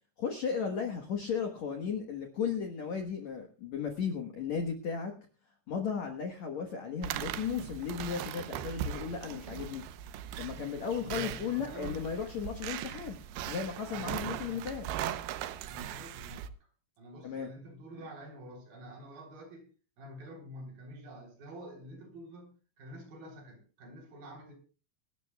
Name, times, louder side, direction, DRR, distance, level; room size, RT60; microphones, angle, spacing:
voice 1, 0.2-5.1 5.7-9.8 10.4-13.2 13.5-14.9 17.2-17.5, left 6 dB, 65° left, 1.8 m, -35 dB
sound 1, 7.0-16.5, right 10 dB, 80° right, 2.5 m, -39 dB
voice 2, 10.5-12.0 13.9-14.7 15.7-16.5 17.0-19.7 20.0-22.5 22.8-24.5, equal, 55° right, 5.2 m, -48 dB
25.5 x 12.5 x 2.3 m
omnidirectional pair, 5.1 m